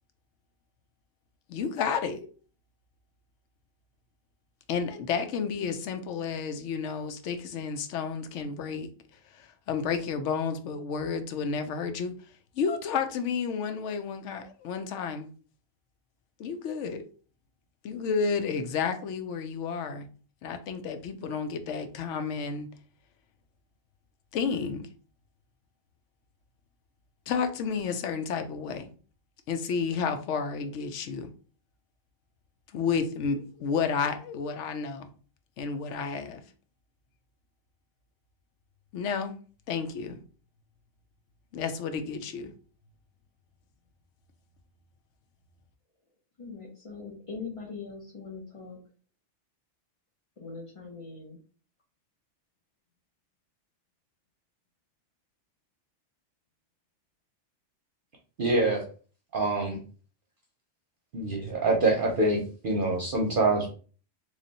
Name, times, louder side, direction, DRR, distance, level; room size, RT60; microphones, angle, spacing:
voice 1, 1.5-2.3 4.7-8.9 9.3-12.1 12.6-15.3 16.4-17.1 17.8-20.1 20.4-22.7 24.3-24.9 27.3-28.9 29.5-31.3 32.7-35.1 35.6-36.4 38.9-39.3 39.7-40.2 41.5-42.5, left 6 dB, 75° left, 0.9 m, -31 dB
voice 2, 46.4-48.8 50.4-51.4, left 4 dB, 30° left, 0.8 m, -41 dB
voice 3, 58.4-58.9 59.3-59.8 61.1-63.7, right 2 dB, 50° right, 0.8 m, -25 dB
3.2 x 2.4 x 3.9 m
omnidirectional pair, 1.3 m